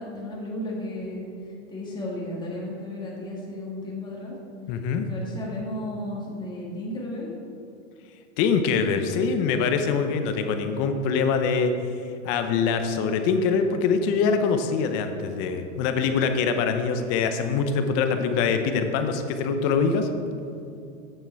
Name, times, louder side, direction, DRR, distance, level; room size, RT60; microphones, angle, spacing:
voice 1, 0.0-4.3 5.0-7.4, left 1 dB, 10° left, -5 dB, 2.1 m, -34 dB
voice 2, 4.7-5.1 8.4-11.7 12.2-20.1, left 5 dB, 40° left, 7 dB, 0.8 m, -24 dB
8.8 x 6.7 x 4.7 m, 2.6 s
supercardioid pair, 140°, 36 cm